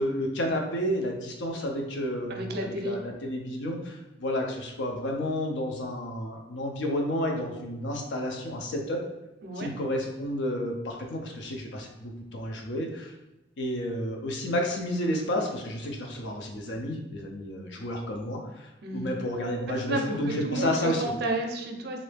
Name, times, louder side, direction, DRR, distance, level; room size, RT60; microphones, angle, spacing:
voice 1, 0.0-9.0 9.6-13.1 13.6-21.1, equal, 75° left, 2 dB, 0.6 m, -31 dB
voice 2, 2.3-3.0 9.4-9.7 18.8-19.1 19.7-22.0, right 1 dB, 55° right, 3 dB, 0.5 m, -32 dB
3.1 x 2.6 x 3.3 m, 0.96 s
head